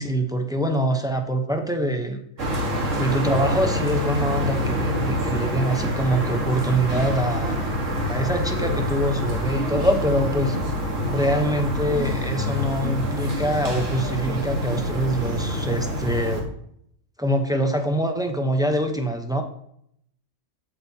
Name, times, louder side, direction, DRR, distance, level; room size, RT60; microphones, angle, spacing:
voice 1, 0.0-2.2 3.0-7.6 8.1-10.6 11.1-16.5 17.2-19.4, right 1 dB, 5° right, 5 dB, 0.5 m, -24 dB
sound 1, 2.4-16.4, equal, 70° right, 1.9 m, -26 dB
8.1 x 7.7 x 2.8 m, 0.70 s
omnidirectional pair, 1.4 m